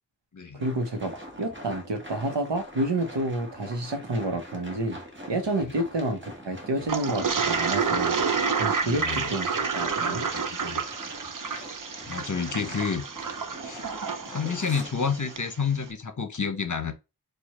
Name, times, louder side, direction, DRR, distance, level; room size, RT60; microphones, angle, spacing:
voice 1, 0.5-5.0 5.3-8.2 8.6-10.3, right 1 dB, 85° right, 1.0 m, -29 dB
sound 1, 0.6-15.4, equal, 30° right, 1.4 m, -44 dB
Toilet flush, 6.9-15.5, right 5 dB, 50° right, 0.7 m, -29 dB
voice 2, 8.8-9.2 10.0-10.8 12.1-13.0 13.6-13.8 14.3-16.9, left 6 dB, 45° left, 0.8 m, -30 dB
4.8 x 2.5 x 4.2 m
wide cardioid pair, 50°, 41 cm